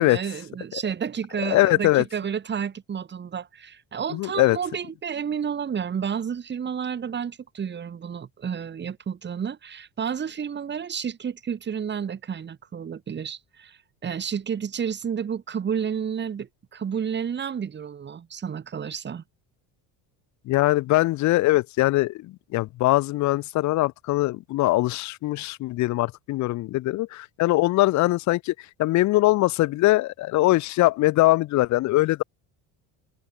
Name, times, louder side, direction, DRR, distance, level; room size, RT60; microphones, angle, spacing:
voice 1, 0.0-19.2, right 7 dB, 25° right, 1.7 m, -31 dB
voice 2, 1.4-2.0 4.1-4.6 20.5-32.2, left 18 dB, 45° left, 0.6 m, -22 dB
cardioid pair, 125°, 39 cm